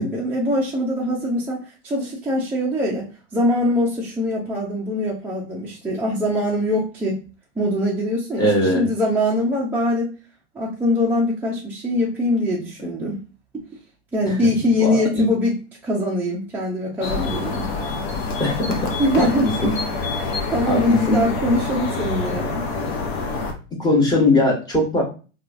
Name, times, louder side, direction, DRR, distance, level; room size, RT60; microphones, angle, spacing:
voice 1, 0.0-7.2 7.6-10.1 10.5-13.2 14.1-15.6 15.8-17.7 19.0-19.5 20.5-22.7, left 1 dB, 5° right, -6 dB, 0.5 m, -22 dB
voice 2, 8.4-8.9 14.8-15.3 18.4-18.9 19.2-19.3 19.6-19.7 20.6-21.2 23.8-25.0, left 2 dB, 10° left, -2 dB, 1.1 m, -19 dB
sound 1, 17.0-23.5, left 3 dB, 55° left, 0.8 m, -26 dB
2.8 x 2.4 x 2.5 m, 0.35 s
hypercardioid pair, 110°, 37 cm